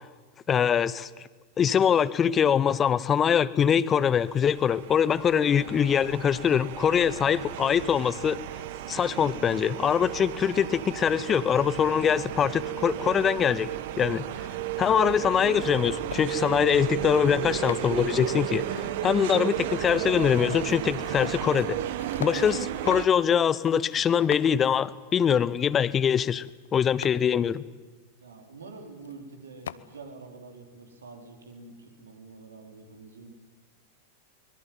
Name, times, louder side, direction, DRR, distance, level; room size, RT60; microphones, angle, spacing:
voice 1, 0.5-1.1 1.6-8.4 8.9-13.7 14.0-14.5 14.8-21.8 22.2-26.4 26.7-27.6, left 8 dB, 25° left, 19 dB, 1.0 m, -23 dB
sound 1, 4.1-23.1, right 12 dB, 55° right, 1.4 m, -33 dB
sound 2, 14.9-15.1 15.4-16.5 17.2-17.9 18.2-24.8 25.4-25.5 26.3-27.2 28.7-28.8 29.0-29.3 29.6-29.7, left 8 dB, 65° left, 0.9 m, -42 dB
voice 2, 28.2-33.3, right 3 dB, 70° right, 5 dB, 4.2 m, -46 dB
23.5 x 22.0 x 9.3 m, 1.3 s
figure-of-eight pair, 90°, 0 cm